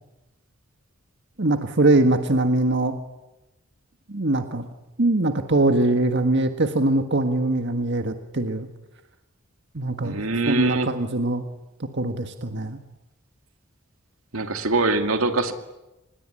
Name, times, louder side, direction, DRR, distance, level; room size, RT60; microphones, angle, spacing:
voice 1, 1.4-3.0 4.1-4.7 5.0-8.7 9.7-11.4 11.9-12.8, right 2 dB, 55° right, 6 dB, 1.6 m, -22 dB
voice 2, 10.0-10.9 14.3-15.5, right 2 dB, 90° right, 6 dB, 2.5 m, -23 dB
26.0 x 20.5 x 9.9 m, 0.99 s
head